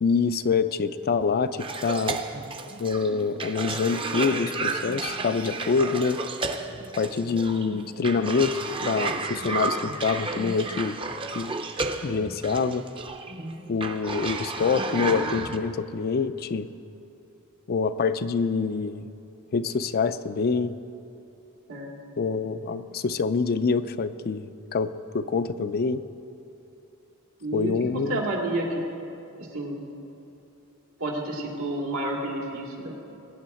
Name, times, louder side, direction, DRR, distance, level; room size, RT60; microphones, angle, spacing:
voice 1, 0.0-2.2 2.8-6.2 6.9-11.0 11.3-11.5 12.0-12.9 13.7-16.7 17.7-19.1 19.5-20.7 22.2-26.0 27.5-28.2, left 5 dB, 45° left, 12 dB, 0.4 m, -26 dB
Cough, 1.6-15.6, right 3 dB, 25° right, 0.6 m, -32 dB
voice 2, 27.4-28.8 29.4-29.8 31.0-32.9, right 1 dB, 85° right, -1 dB, 2.3 m, -30 dB
21.5 x 8.9 x 4.3 m, 2.9 s
head